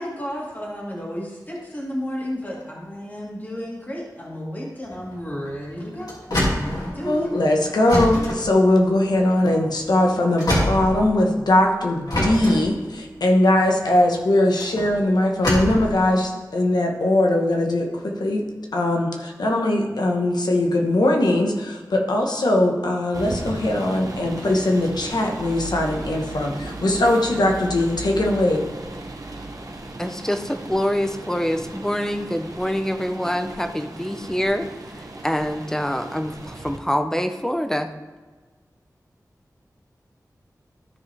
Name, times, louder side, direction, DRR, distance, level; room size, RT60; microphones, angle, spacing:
voice 1, 0.0-7.3, equal, 25° left, -4 dB, 1.9 m, -32 dB
sound 1, 4.8-11.5 12.1-15.9, left 1 dB, 70° left, 2.5 m, -26 dB
voice 2, 7.0-28.6, left 1 dB, 90° left, 1 dB, 1.2 m, -20 dB
sound 2, 23.1-36.8, right 2 dB, 60° right, 1.1 m, -36 dB
voice 3, 30.0-37.9, equal, 5° left, 7 dB, 0.6 m, -25 dB
13.0 x 5.2 x 3.4 m, 1.4 s
wide cardioid pair, 75°, 7 cm